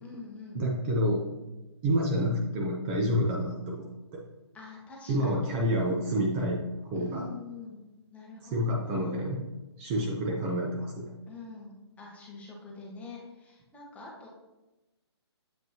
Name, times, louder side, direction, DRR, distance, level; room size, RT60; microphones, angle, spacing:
voice 1, 0.0-0.6 4.5-5.3 6.9-7.8 8.1-9.2 9.9-10.5 11.3-14.3, left 3 dB, 10° left, -3 dB, 1.2 m, -45 dB
voice 2, 0.5-1.2 1.8-4.2 5.1-6.7 6.9-7.3 8.5-9.4 9.8-11.1, equal, 25° right, -1 dB, 0.7 m, -28 dB
7.6 x 5.1 x 2.9 m, 1.0 s
figure-of-eight pair, 140°, 15 cm